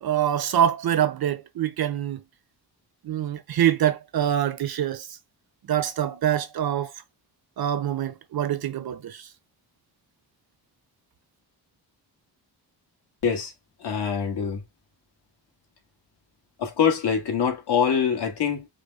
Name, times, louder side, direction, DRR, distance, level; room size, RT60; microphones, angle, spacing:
voice 1, 0.0-2.2 3.0-5.2 5.7-6.9 7.6-9.3, right 10 dB, 60° right, 0.8 m, -25 dB
voice 2, 13.8-14.6 16.6-18.7, left 7 dB, 70° left, 1.9 m, -24 dB
5.1 x 2.2 x 4.0 m
cardioid pair, 115°, 42 cm